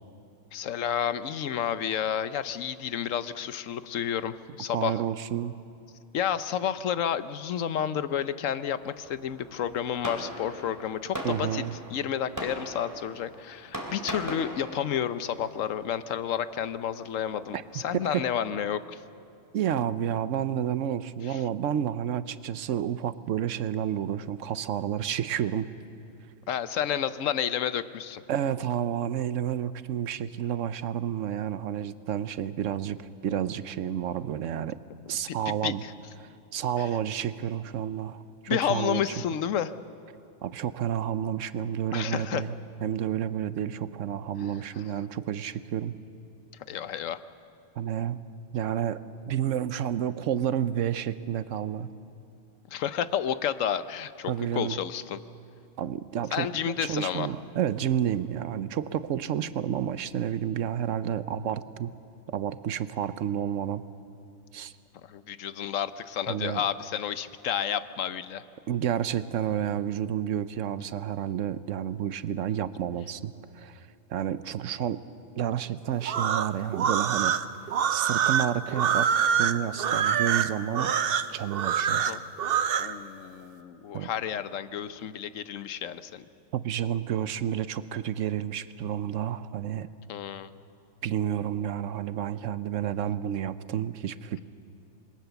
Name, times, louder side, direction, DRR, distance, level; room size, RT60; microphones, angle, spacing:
voice 1, 0.5-5.0 6.1-11.6 11.9-19.0 21.2-21.4 26.5-28.2 35.3-35.9 36.8-36.9 38.5-39.7 41.9-42.4 44.4-44.8 46.7-47.2 52.7-55.2 56.3-57.3 65.0-68.4 81.9-82.2 82.8-86.2 90.1-90.5, left 9 dB, 90° left, 13 dB, 1.1 m, -31 dB
voice 2, 4.7-5.5 11.2-11.7 17.5-17.6 18.0-18.2 19.5-25.7 28.3-34.8 35.1-35.8 36.5-39.2 40.4-42.5 42.8-46.0 47.8-48.2 48.5-51.9 54.3-54.8 55.8-56.5 56.8-61.9 62.3-63.8 64.5-64.7 66.3-66.6 68.7-73.8 74.1-75.0 75.4-77.3 77.9-79.1 79.4-80.9 81.3-82.1 83.9-84.1 86.5-89.9 91.0-94.4, right 9 dB, 80° right, 14 dB, 1.1 m, -30 dB
Fireworks, 8.8-18.2, equal, 15° right, 3.0 m, -41 dB
sound 1, 76.0-82.9, right 8 dB, 55° right, 0.8 m, -25 dB
26.5 x 21.5 x 7.0 m, 2.7 s
omnidirectional pair, 1.3 m